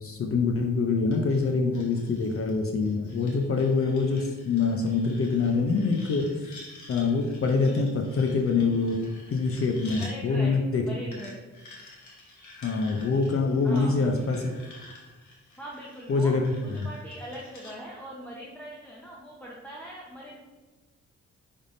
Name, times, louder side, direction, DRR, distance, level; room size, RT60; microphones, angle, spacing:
voice 1, 0.0-6.3 6.9-9.0 9.3-10.8 12.6-14.6 16.1-16.6, left 4 dB, 50° left, 3 dB, 0.5 m, -25 dB
sound 1, 1.1-10.1 11.1-17.7, left 2 dB, 70° left, 1.2 m, -50 dB
voice 2, 10.0-11.4 13.6-14.2 15.6-20.4, right 1 dB, 5° left, -5 dB, 0.8 m, -41 dB
5.2 x 3.5 x 2.6 m, 1.2 s
cardioid pair, 75°, 30 cm